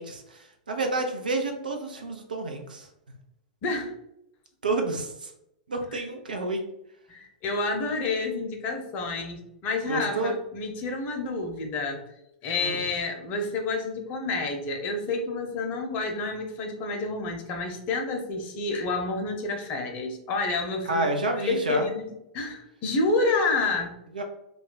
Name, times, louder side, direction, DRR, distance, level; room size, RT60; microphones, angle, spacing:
voice 1, 0.0-2.9 4.6-5.3 5.7-6.6 9.9-10.3 12.6-12.8 20.9-21.9 24.1-24.2, right 2 dB, 80° right, 4 dB, 0.6 m, -29 dB
voice 2, 3.6-3.9 5.9-6.0 7.1-12.0 12.4-21.1 21.3-23.9, left 3 dB, 40° left, 3 dB, 0.7 m, -29 dB
2.4 x 2.2 x 3.8 m, 0.81 s
figure-of-eight pair, 100°, 5 cm